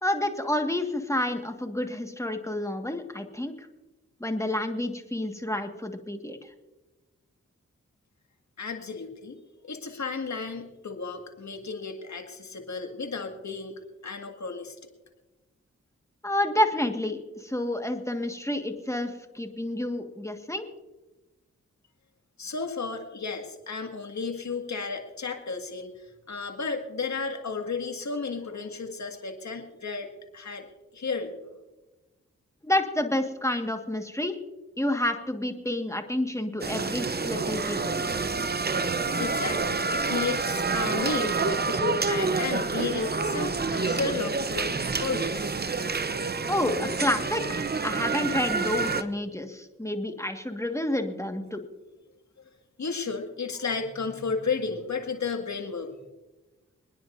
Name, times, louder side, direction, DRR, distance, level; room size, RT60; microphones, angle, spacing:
voice 1, 0.0-3.7 4.2-6.5 16.2-20.6 32.6-34.4 34.8-38.1 46.5-51.6, left 1 dB, 10° left, 5 dB, 1.6 m, -29 dB
voice 2, 8.6-9.4 9.6-13.7 14.0-14.8 22.4-25.9 26.3-30.6 30.9-31.4 39.2-45.6 52.8-55.9, left 4 dB, 70° left, 5 dB, 2.0 m, -33 dB
sound 1, 36.6-49.0, right 4 dB, 35° right, 0.7 m, -28 dB
27.5 x 10.0 x 2.6 m, 1.1 s
cardioid pair, 50°, 29 cm